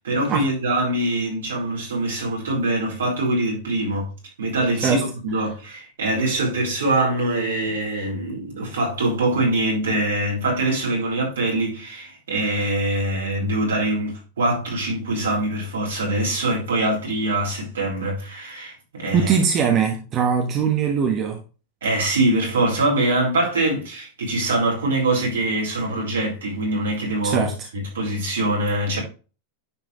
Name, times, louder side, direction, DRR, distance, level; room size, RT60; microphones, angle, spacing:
voice 1, 0.0-4.1 4.4-19.3 21.8-27.5 27.7-29.0, right 1 dB, 75° right, 4.4 m, -23 dB
voice 2, 19.1-21.4 27.2-27.7, right 7 dB, 40° right, 1.5 m, -21 dB
10.0 x 4.9 x 3.3 m
hypercardioid pair, 95°, 0 cm